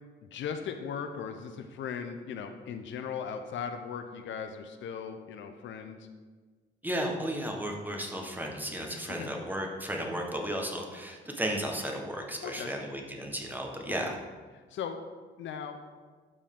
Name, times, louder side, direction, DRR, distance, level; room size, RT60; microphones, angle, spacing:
voice 1, 0.2-6.1 9.1-9.3 12.4-12.7 14.0-14.2 14.5-15.0 15.4-15.8, left 7 dB, 70° left, 7 dB, 0.7 m, -38 dB
voice 2, 6.8-14.2, equal, 10° right, 1 dB, 1.3 m, -34 dB
12.0 x 4.5 x 3.7 m, 1.4 s
cardioid pair, 90°, 20 cm